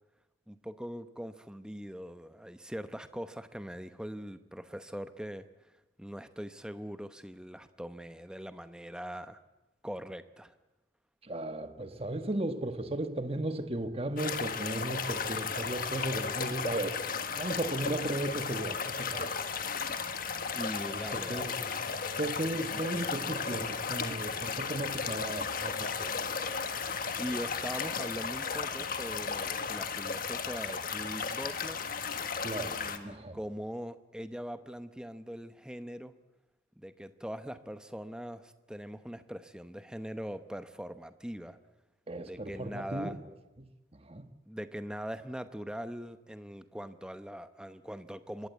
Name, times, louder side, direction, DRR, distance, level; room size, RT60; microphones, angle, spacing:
voice 1, 0.5-5.7 6.0-9.4 9.8-10.6 20.5-21.5 27.2-31.8 32.7-36.1 36.8-41.6 42.2-43.2 44.5-48.5, equal, 5° right, 0.9 m, -41 dB
voice 2, 11.2-17.0 17.4-19.4 20.9-21.6 22.2-26.2 32.4-33.4 42.1-43.2 43.9-44.3, right 1 dB, 30° right, 1.3 m, -35 dB
sound 1, 14.2-33.0, left 5 dB, 45° left, 1.5 m, -35 dB
24.5 x 20.0 x 8.3 m
head